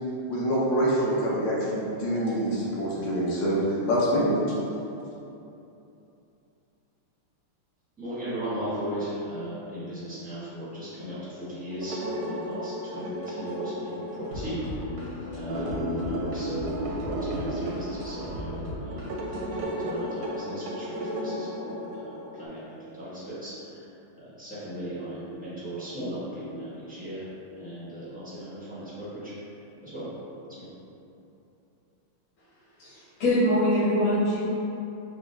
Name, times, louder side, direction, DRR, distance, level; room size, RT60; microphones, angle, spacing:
voice 1, 0.3-3.6 3.9-4.3, equal, 70° left, -6 dB, 1.5 m, -25 dB
voice 2, 8.0-23.9 24.2-27.3 27.5-29.3 29.8-30.1 30.5-30.7, right 1 dB, 10° right, -11 dB, 0.5 m, -37 dB
sound 1, 11.7-22.5, equal, 75° right, 1.0 m, -34 dB
sound 2, 14.3-19.6, left 1 dB, 55° right, 0.5 m, -36 dB
voice 3, 32.8-34.4, equal, 85° left, -14 dB, 2.1 m, -23 dB
5.8 x 2.0 x 3.2 m, 2.8 s
omnidirectional pair, 2.2 m